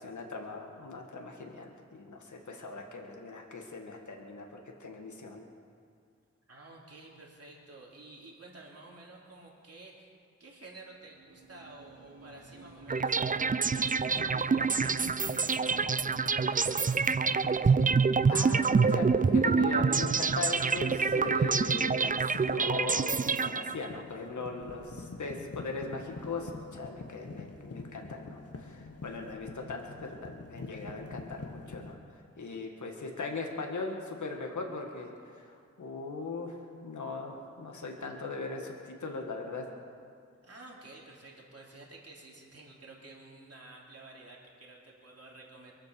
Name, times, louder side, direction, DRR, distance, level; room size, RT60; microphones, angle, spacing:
voice 1, 0.0-5.4 18.3-29.9 30.2-32.0 32.4-39.7, left 3 dB, 75° left, 1 dB, 1.8 m, -39 dB
voice 2, 6.5-10.1 10.4-18.0 38.1-38.2 40.4-45.7, right 2 dB, 55° right, -3 dB, 3.2 m, -51 dB
sound 1, 10.9-15.6, right 3 dB, 75° right, 3.6 m, -50 dB
sound 2, 12.9-24.0, right 5 dB, 30° right, 0.4 m, -27 dB
sound 3, 14.1-31.9, left 3 dB, 55° left, 1.4 m, -46 dB
23.0 x 7.9 x 6.9 m, 2.2 s
cardioid pair, 50°, 30 cm